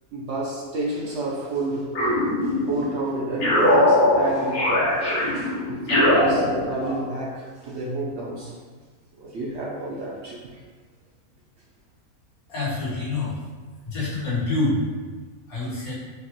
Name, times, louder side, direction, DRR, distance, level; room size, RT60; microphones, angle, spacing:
voice 1, 0.1-2.2 2.4-8.5 9.2-10.6, right 2 dB, 60° right, -4 dB, 0.8 m, -30 dB
sound 1, 1.9-2.9 3.4-7.1, left 1 dB, 50° left, 1.0 m, -21 dB
voice 2, 12.5-13.4 13.8-14.8 15.5-15.9, left 2 dB, 75° left, -9 dB, 1.9 m, -26 dB
5.1 x 2.4 x 3.0 m, 1.4 s
omnidirectional pair, 1.5 m